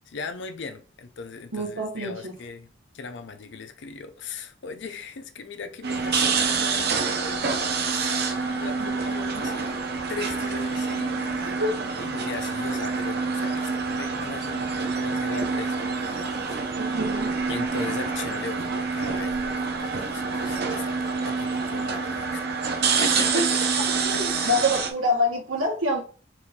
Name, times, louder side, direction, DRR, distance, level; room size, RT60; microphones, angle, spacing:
voice 1, 0.1-2.7 2.9-9.8 10.1-11.6 12.0-16.6 17.5-22.4 23.0-23.6 24.1-24.6, left 4 dB, 60° left, 0.6 m, -38 dB
voice 2, 1.5-2.3 8.8-8.9 9.3-9.5 11.4-11.7 16.8-17.3 23.3-23.5 23.9-26.0, left 1 dB, 85° right, 1.6 m, -26 dB
sound 1, 5.8-24.9, right 4 dB, 55° right, 0.7 m, -27 dB
4.3 x 2.7 x 3.6 m
head